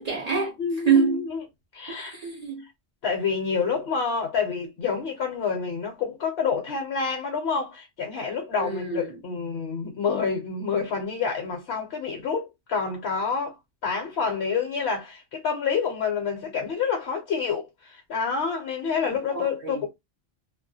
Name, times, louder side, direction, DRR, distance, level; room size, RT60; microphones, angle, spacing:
voice 1, 0.0-0.5 0.8-1.2 1.9-2.6 8.6-9.1 19.3-19.8, right 6 dB, 45° right, 0.5 m, -25 dB
voice 2, 0.6-1.4 1.7-2.1 3.0-13.5 13.8-19.9, left 5 dB, 65° left, 0.9 m, -28 dB
2.3 x 2.1 x 2.6 m
omnidirectional pair, 1.2 m